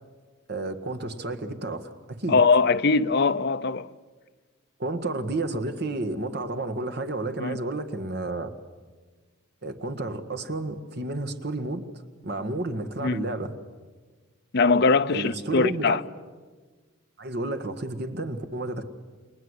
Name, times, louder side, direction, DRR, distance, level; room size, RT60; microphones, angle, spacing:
voice 1, 0.5-2.4 4.8-8.5 9.6-11.9 12.2-13.5 15.1-16.0 17.2-18.8, right 2 dB, 50° right, 1.7 m, -31 dB
voice 2, 2.3-3.9 7.4-7.6 13.0-13.2 14.5-16.0, left 4 dB, 55° left, 0.7 m, -21 dB
29.5 x 19.0 x 8.2 m
head